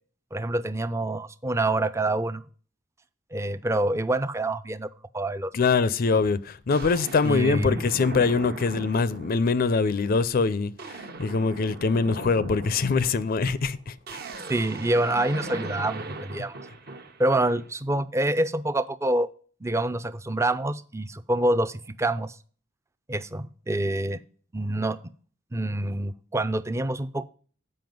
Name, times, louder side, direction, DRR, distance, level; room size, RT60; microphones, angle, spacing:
voice 1, 0.3-2.4 3.3-4.9 5.1-5.5 7.2-7.8 14.5-16.6 17.2-19.3 19.6-22.3 23.1-24.2 24.5-25.0 25.5-27.3, right 1 dB, 15° right, 0.4 m, -26 dB
voice 2, 5.5-14.2, left 4 dB, 50° left, 0.4 m, -24 dB
sound 1, 5.8-6.0 6.7-9.6 10.0-10.3 10.6-17.7, right 2 dB, 55° right, 1.0 m, -39 dB
7.7 x 5.4 x 5.1 m
head